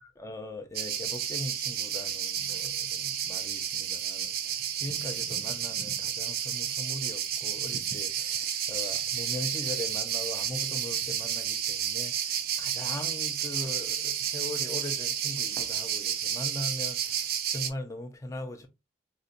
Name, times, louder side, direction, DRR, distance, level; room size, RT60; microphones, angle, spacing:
voice 1, 0.0-18.7, left 1 dB, 15° left, 0.5 m, -40 dB
sound 1, 0.7-17.7, right 9 dB, 50° right, 0.4 m, -31 dB
3.9 x 2.2 x 2.5 m
head